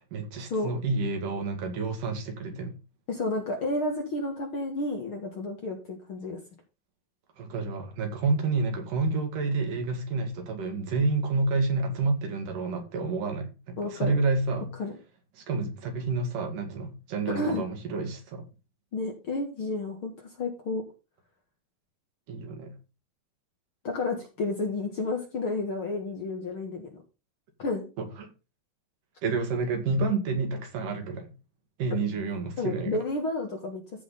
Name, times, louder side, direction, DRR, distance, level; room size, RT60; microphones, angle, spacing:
voice 1, 0.1-2.7 7.4-14.7 15.4-18.4 22.3-22.7 28.0-28.3 29.2-31.3 31.8-33.0, right 3 dB, 70° right, 3.4 m, -29 dB
voice 2, 3.1-6.4 13.8-14.2 14.8-14.9 17.3-17.7 18.9-20.8 23.8-26.9 27.6-27.9 32.6-33.8, left 2 dB, 45° left, 2.0 m, -31 dB
14.5 x 4.9 x 3.8 m
omnidirectional pair, 4.1 m